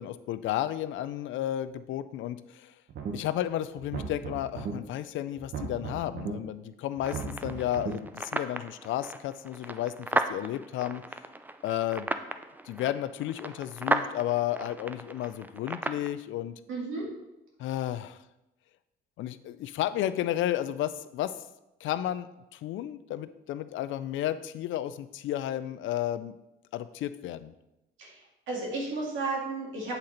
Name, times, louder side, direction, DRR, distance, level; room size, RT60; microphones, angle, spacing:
voice 1, 0.0-2.7 3.1-11.0 11.6-12.1 12.7-16.5 17.6-18.2 19.2-21.3 21.8-26.3 26.7-27.5, left 12 dB, 80° left, 13 dB, 0.4 m, -32 dB
sound 1, 2.9-3.4 3.8-4.7 5.4-6.3 7.0-7.9, right 6 dB, 60° right, 0.9 m, -36 dB
sound 2, 7.0-16.1, right 2 dB, 10° right, 0.4 m, -35 dB
voice 2, 16.7-17.1 28.0-28.1 28.5-30.0, right 3 dB, 80° right, -2 dB, 2.2 m, -32 dB
8.1 x 3.9 x 4.2 m, 0.92 s
cardioid pair, 90°, 20 cm